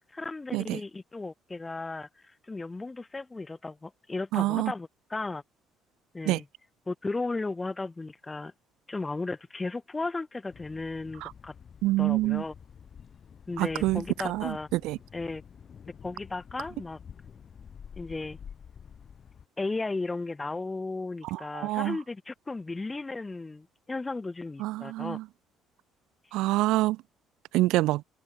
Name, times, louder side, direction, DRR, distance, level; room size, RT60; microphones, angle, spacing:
voice 1, 0.1-2.1 2.5-5.4 6.1-6.5 6.9-8.5 8.9-11.5 12.0-12.5 13.5-14.7 15.1-15.4 16.0-17.0 18.0-18.4 19.6-25.2, left 3 dB, 15° left, 1.0 m, -35 dB
voice 2, 4.3-4.7 6.3-6.4 11.2-11.3 11.8-12.4 13.6-15.0 21.3-22.0 24.6-25.2 26.3-27.0 27.5-28.0, right 18 dB, 80° right, 1.0 m, -26 dB
Thunder, 10.5-19.5, left 7 dB, 45° left, 3.2 m, -49 dB
open air
cardioid pair, 105°, 0 cm